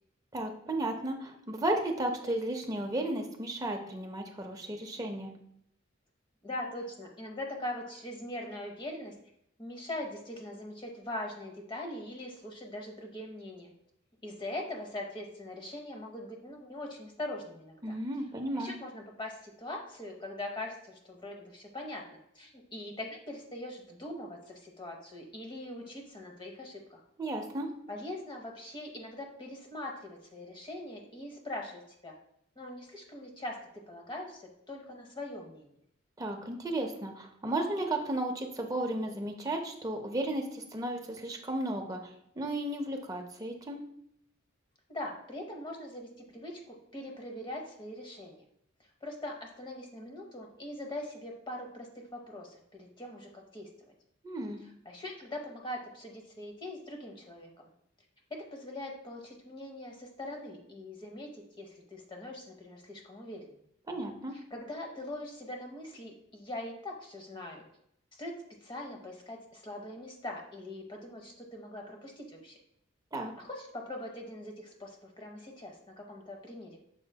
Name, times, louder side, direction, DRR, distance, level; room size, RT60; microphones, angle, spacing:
voice 1, 0.3-5.3 17.8-18.7 27.2-27.7 36.2-43.8 54.2-54.6 63.9-64.3 73.1-73.3, right 1 dB, 15° right, 2 dB, 0.5 m, -34 dB
voice 2, 6.4-9.1 9.6-13.7 14.2-18.0 18.5-27.0 27.9-32.1 32.6-34.4 34.7-35.7 44.9-48.4 49.0-53.9 54.9-57.7 58.3-63.5 64.5-67.7 68.1-68.3 68.6-72.6 73.4-76.8, left 1 dB, 25° left, 2 dB, 0.7 m, -42 dB
6.3 x 3.8 x 2.2 m, 0.74 s
head